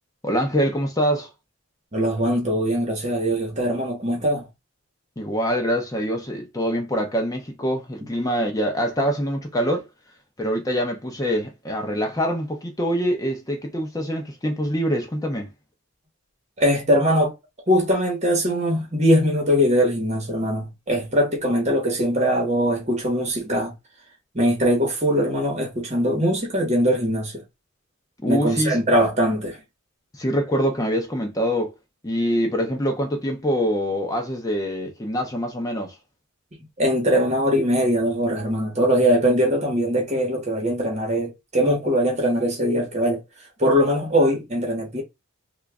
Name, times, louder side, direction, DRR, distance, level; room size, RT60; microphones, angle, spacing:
voice 1, 0.2-1.3 5.2-9.9 10.4-15.5 28.2-28.8 30.1-31.7 32.0-36.0, equal, 15° left, 0.5 m, -24 dB
voice 2, 1.9-4.5 16.6-17.3 17.7-23.7 24.3-27.3 28.3-29.6 36.8-43.2 43.6-45.0, equal, 30° right, 1.1 m, -21 dB
3.0 x 2.3 x 3.5 m
head